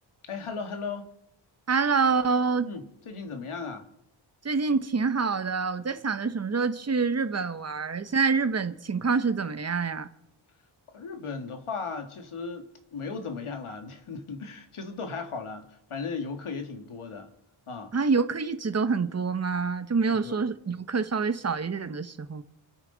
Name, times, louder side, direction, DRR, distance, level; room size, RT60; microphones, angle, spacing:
voice 1, 0.3-1.1 2.6-3.9 10.9-12.6 12.9-17.3 17.7-17.9 20.2-20.3, left 4 dB, 85° left, 1.9 m, -36 dB
voice 2, 1.7-2.7 4.4-10.1 17.9-22.4, right 5 dB, 30° right, 0.8 m, -26 dB
29.0 x 9.7 x 3.9 m
wide cardioid pair, 165°, 49 cm